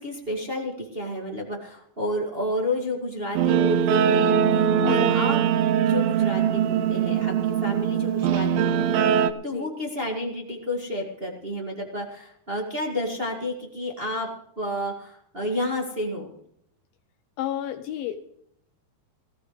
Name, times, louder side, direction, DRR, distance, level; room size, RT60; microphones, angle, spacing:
voice 1, 0.0-5.4 5.7-14.3 14.6-16.3, left 1 dB, 30° right, -1 dB, 1.0 m, -31 dB
Guitar, 3.4-9.3, right 8 dB, 75° right, 2.3 m, -22 dB
voice 2, 4.8-5.2 9.3-9.7 17.4-18.2, left 12 dB, 80° left, 8 dB, 2.3 m, -31 dB
18.0 x 15.5 x 3.2 m, 0.71 s
omnidirectional pair, 4.7 m